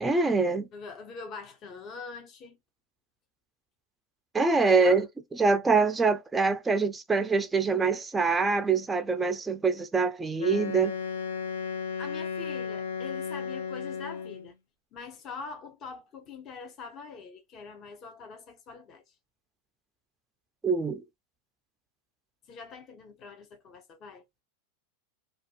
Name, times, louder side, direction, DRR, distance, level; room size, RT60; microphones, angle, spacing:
voice 1, 0.0-0.7 4.3-5.1 5.3-11.0 20.6-21.0, right 4 dB, 10° right, 0.3 m, -24 dB
voice 2, 0.7-2.6 4.6-5.0 12.0-14.5 14.9-19.1 22.5-24.2, left 5 dB, 35° left, 0.6 m, -43 dB
Wind instrument woodwind instrument, 10.4-14.5, left 6 dB, 85° left, 0.6 m, -34 dB
2.5 x 2.3 x 2.4 m
hypercardioid pair, 115°, 0 cm